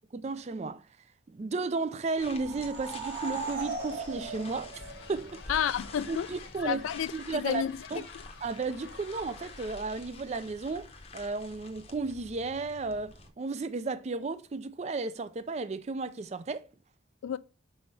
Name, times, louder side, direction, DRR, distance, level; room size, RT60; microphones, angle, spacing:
voice 1, 0.1-0.9 1.3-4.8 5.1-5.4 6.1-6.8 7.1-8.0 8.4-16.6, right 3 dB, 35° right, 0.3 m, -34 dB
sound 1, 2.1-5.6, right 4 dB, 65° right, 3.1 m, -38 dB
sound 2, 2.2-13.3, left 3 dB, 30° left, 0.7 m, -48 dB
sound 3, 4.7-9.8, left 5 dB, 60° left, 0.9 m, -50 dB
voice 2, 5.5-6.3 6.7-7.8 8.1-8.2 17.2-17.4, left 9 dB, 85° left, 0.3 m, -31 dB
5.6 x 4.4 x 4.0 m
head